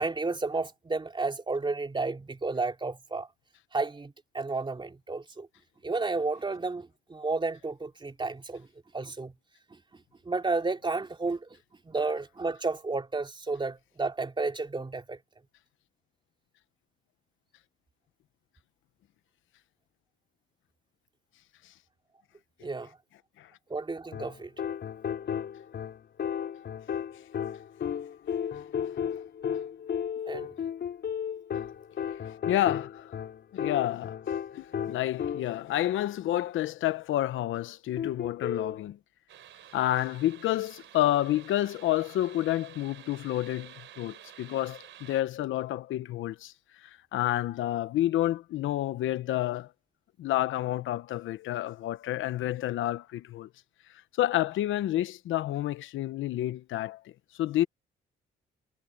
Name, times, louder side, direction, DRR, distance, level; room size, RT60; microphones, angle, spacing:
voice 1, 0.0-3.3 3.7-5.5 5.8-8.7 8.9-9.3 9.7-9.8 10.2-11.5 11.8-15.2 22.6-22.9 23.7-24.5 30.3-30.5, right 3 dB, 25° right, 3.1 m, -32 dB
sound 1, 24.1-35.7 38.0-38.8, left 8 dB, 55° left, 5.2 m, -34 dB
voice 2, 28.8-29.2 32.2-33.1 33.5-34.2 34.5-39.0 39.7-46.5 46.8-49.7 50.2-53.5 54.2-57.0 57.4-57.7, left 14 dB, 80° left, 0.9 m, -29 dB
sound 2, 39.3-45.2, right 11 dB, 75° right, 4.2 m, -51 dB
cardioid pair, 90°, 20 cm